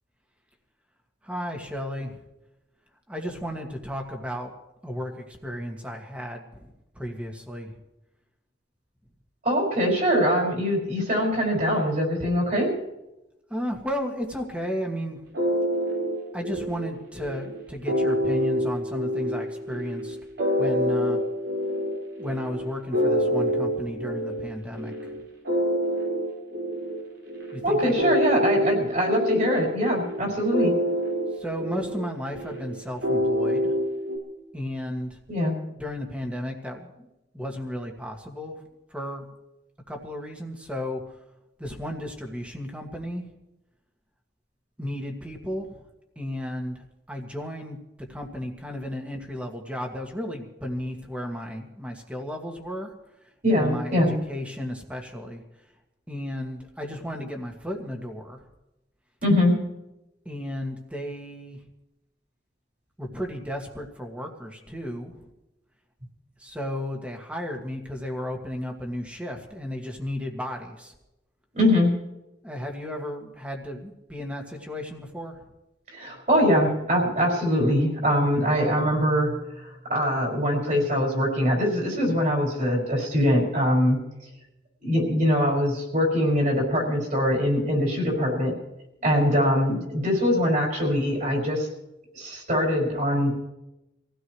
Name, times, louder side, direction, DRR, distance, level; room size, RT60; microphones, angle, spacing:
voice 1, 1.2-2.2 3.1-4.5 4.8-6.7 7.0-7.7 13.5-15.2 16.3-20.2 20.6-21.2 22.2-24.9 27.5-28.2 31.4-33.7 34.5-35.1 35.8-37.1 37.3-38.6 38.9-39.2 39.9-41.0 41.6-43.2 44.8-45.7 46.2-47.8 48.1-52.9 53.5-55.4 56.1-58.4 60.3-61.6 63.0-65.2 66.4-70.9 72.4-75.3, equal, 5° right, 2 dB, 2.0 m, -34 dB
voice 2, 9.4-12.7 27.6-30.7 35.3-35.5 53.4-54.1 59.2-59.5 71.5-71.9 75.9-79.3 79.9-84.0 84.8-88.5 89.0-91.7 92.1-93.3, equal, 45° right, -1 dB, 5.4 m, -23 dB
sound 1, 15.3-34.2, equal, 85° right, 5.0 m, -27 dB
25.5 x 16.5 x 3.2 m, 0.95 s
head